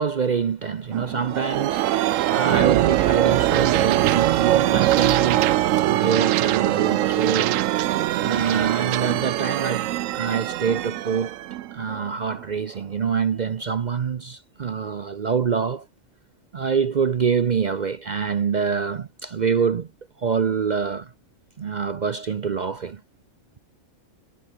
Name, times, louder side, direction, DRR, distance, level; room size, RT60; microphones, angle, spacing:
voice 1, 0.0-11.4 11.7-15.9 16.5-19.9 20.2-21.1 21.6-23.0, right 6 dB, 45° right, 0.6 m, -26 dB
sound 1, 0.9-12.4, right 14 dB, 80° right, 1.0 m, -22 dB
omnidirectional pair, 1.3 m